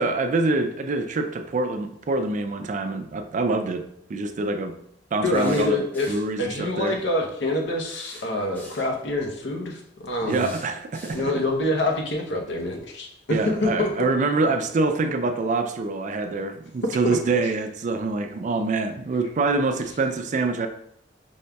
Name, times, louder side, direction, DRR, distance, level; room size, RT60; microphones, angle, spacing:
voice 1, 0.0-3.8 4.1-4.8 5.1-7.0 10.3-11.2 13.3-20.7, right 3 dB, 45° right, 7 dB, 0.4 m, -25 dB
voice 2, 5.2-10.5 11.1-14.1 16.9-17.2 17.4-17.5, left 1 dB, 70° left, 1 dB, 0.8 m, -26 dB
sound 1, 5.3-6.4 6.9-7.0 7.8-8.9 10.3-11.4 11.9-12.0, equal, 10° left, 0.8 m, -45 dB
5.2 x 3.5 x 2.2 m, 0.72 s
head